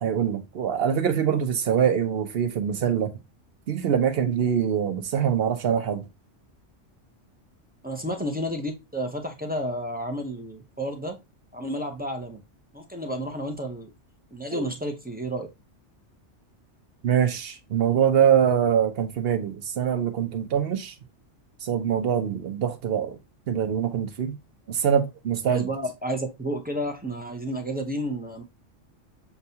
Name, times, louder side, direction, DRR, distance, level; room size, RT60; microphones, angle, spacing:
voice 1, 0.0-3.1 3.7-6.1 14.5-14.7 17.0-20.9 21.6-23.2 23.5-24.4 24.7-25.7, right 8 dB, 65° right, 0.8 m, -24 dB
voice 2, 7.8-11.2 11.5-12.4 12.7-13.9 14.3-15.5 25.5-28.4, equal, 10° right, 0.4 m, -31 dB
6.8 x 2.3 x 2.7 m
omnidirectional pair, 1.2 m